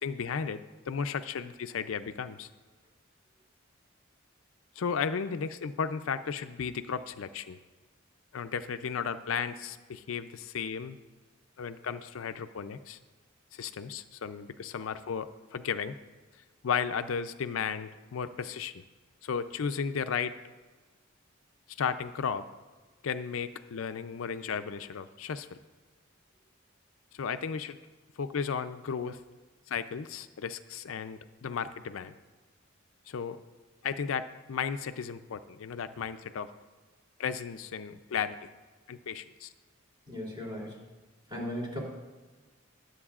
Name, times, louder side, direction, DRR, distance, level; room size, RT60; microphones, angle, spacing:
voice 1, 0.0-2.5 4.8-7.6 8.3-11.0 11.6-13.0 13.5-16.0 16.6-18.8 19.2-20.3 21.8-22.4 23.0-25.6 27.1-27.8 28.2-29.2 29.7-32.1 33.1-33.4 33.8-36.5 37.2-38.5 38.9-39.5, left 6 dB, 80° left, 11 dB, 0.5 m, -34 dB
voice 2, 40.1-40.8 41.3-41.8, equal, 25° right, -3 dB, 3.1 m, -36 dB
22.0 x 7.9 x 2.4 m, 1.4 s
head